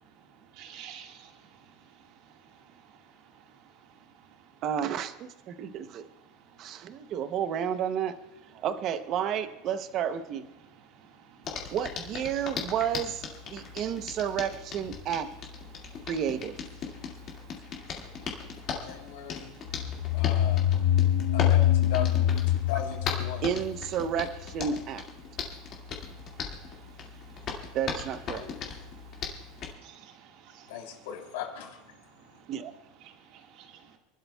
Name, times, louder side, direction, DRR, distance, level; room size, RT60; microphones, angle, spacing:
voice 1, 0.5-1.3 11.3-11.4 13.5-13.8 15.7-16.1 17.0-18.5 18.8-18.9 19.5-20.2 21.2-21.3 26.1-27.7 28.8-30.7 33.0-33.8, right 8 dB, 50° right, 2 dB, 1.6 m, -53 dB
voice 2, 4.6-6.1 6.6-8.1 8.6-10.5 11.7-15.3 16.1-16.5 23.4-25.0 27.7-28.4 32.5-32.7, right 8 dB, 35° right, 10 dB, 0.7 m, -31 dB
Hands, 11.4-29.7, left 6 dB, 30° left, 2.0 m, -39 dB
voice 3, 18.8-19.5 20.1-20.6 21.3-23.5 28.4-28.8 30.7-31.8, left 9 dB, 90° left, 1 dB, 3.2 m, -38 dB
sound 1, 19.7-24.2, left 11 dB, 70° left, 1.0 m, -25 dB
28.0 x 12.0 x 2.3 m, 0.97 s
supercardioid pair, 170°, 0 cm